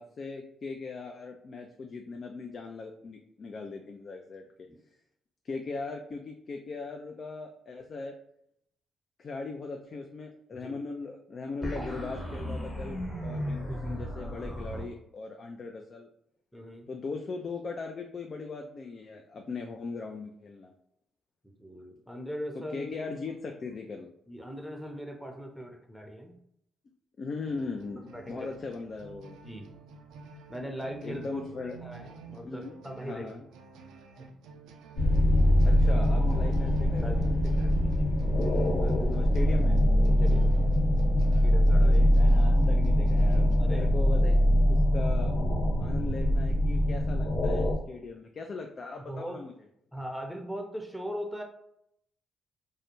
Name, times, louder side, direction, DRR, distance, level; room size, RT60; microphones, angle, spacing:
voice 1, 0.0-4.4 5.4-8.1 9.2-16.1 16.9-20.7 22.7-24.1 27.2-29.4 31.0-31.8 32.3-32.8 33.0-33.4 35.6-37.3 38.6-39.8 41.7-44.4 44.6-45.3 45.8-49.5, left 4 dB, 50° left, 3 dB, 0.3 m, -39 dB
sound 1, 11.6-14.8, equal, 25° left, 1.0 m, -35 dB
voice 2, 16.5-16.9 21.6-23.2 24.3-26.4 28.1-28.5 29.4-29.7 30.5-33.3 37.0-38.7 40.2-40.6 41.4-42.0 43.6-43.9 49.1-49.4 49.9-51.4, equal, 5° left, 2 dB, 0.7 m, -40 dB
sound 2, 27.5-43.6, right 5 dB, 80° right, 0.3 m, -49 dB
sound 3, 34.9-47.8, equal, 65° left, 1.0 m, -23 dB
2.3 x 2.1 x 3.0 m, 0.75 s
supercardioid pair, 55°, 0 cm